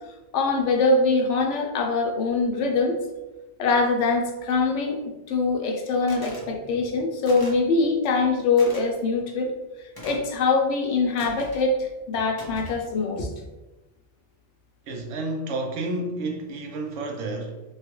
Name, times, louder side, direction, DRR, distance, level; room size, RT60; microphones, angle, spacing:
voice 1, 0.3-2.9 3.6-5.0 5.3-9.5 10.0-13.3, left 3 dB, 80° left, 2 dB, 0.9 m, -23 dB
sound 1, 6.1-6.5 7.2-7.7 8.6-8.8 9.9-10.3 11.2-11.7 12.3-12.8, equal, 30° left, 0.4 m, -41 dB
voice 2, 14.9-17.6, right 2 dB, 75° right, 2 dB, 0.9 m, -30 dB
3.1 x 2.3 x 2.9 m, 1.1 s
omnidirectional pair, 1.2 m